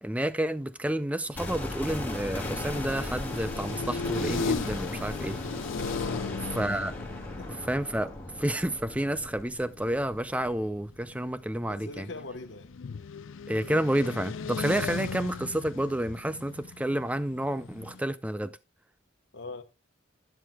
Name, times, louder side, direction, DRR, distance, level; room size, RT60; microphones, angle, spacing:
voice 1, 0.0-5.4 6.5-6.9 7.7-8.1 8.4-12.1 13.5-18.5, right 1 dB, 5° right, 0.4 m, -30 dB
sound 1, 1.3-9.3 9.6-9.8 10.1-18.0, left 5 dB, 80° left, 0.5 m, -37 dB
sound 2, 1.3-11.4 11.6-11.7, left 1 dB, 10° left, 2.9 m, -37 dB
voice 2, 6.1-6.6 7.4-7.7 11.7-12.7 19.3-19.6, left 2 dB, 60° left, 1.1 m, -42 dB
11.5 x 10.5 x 2.3 m
head